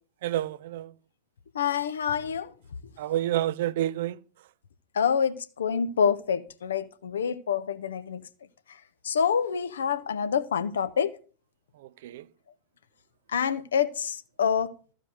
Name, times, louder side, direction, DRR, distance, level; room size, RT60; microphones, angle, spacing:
voice 1, 0.2-0.9 3.0-4.2 12.0-12.2, right 13 dB, 55° right, 0.5 m, -28 dB
voice 2, 1.5-2.5 4.9-8.2 9.0-11.2 13.3-14.7, left 7 dB, 65° left, 1.0 m, -27 dB
14.5 x 5.0 x 8.1 m
figure-of-eight pair, 90°, 0 cm